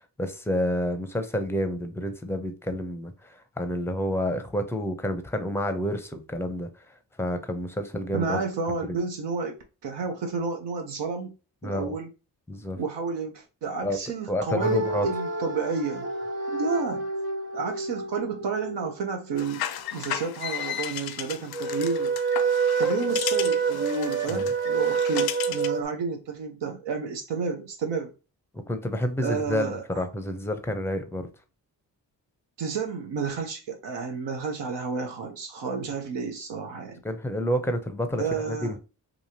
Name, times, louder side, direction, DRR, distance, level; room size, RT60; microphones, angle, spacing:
voice 1, 0.0-6.7 7.2-8.4 8.9-9.0 11.6-12.0 12.5-12.8 13.8-14.0 14.3-15.1 24.3-24.5 28.5-31.3 37.0-38.8, equal, 5° left, 0.6 m, -29 dB
voice 2, 8.1-9.6 9.8-11.3 11.6-12.1 12.8-16.1 16.5-17.1 17.5-19.6 19.9-22.1 22.8-28.1 29.2-30.0 32.6-37.0 38.2-38.8, right 5 dB, 70° right, 0.7 m, -31 dB
sound 1, 14.6-19.5 21.5-25.8, right 5 dB, 25° right, 0.9 m, -28 dB
sound 2, 19.4-25.8, left 10 dB, 55° left, 0.5 m, -35 dB
2.9 x 2.4 x 2.8 m
supercardioid pair, 45°, 44 cm